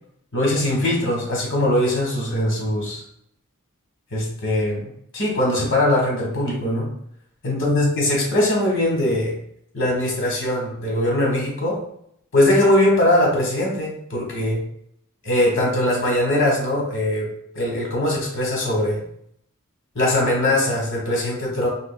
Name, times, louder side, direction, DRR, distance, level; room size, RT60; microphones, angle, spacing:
voice 1, 0.3-3.0 4.1-4.8 5.1-6.9 7.4-9.3 9.7-11.8 12.3-14.6 15.2-17.3 17.5-19.0 19.9-21.7, left 1 dB, 60° left, -1 dB, 1.4 m, -21 dB
3.7 x 3.0 x 2.3 m, 0.70 s
head